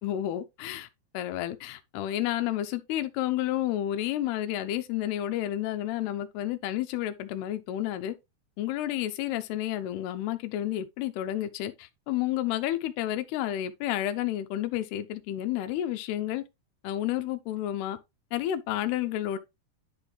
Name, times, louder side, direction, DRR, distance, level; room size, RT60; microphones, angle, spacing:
voice 1, 0.0-0.9 1.1-8.1 8.6-16.5 16.8-18.0 18.3-19.4, left 13 dB, 85° left, 2.8 m, -30 dB
10.5 x 4.1 x 3.3 m
omnidirectional pair, 4.7 m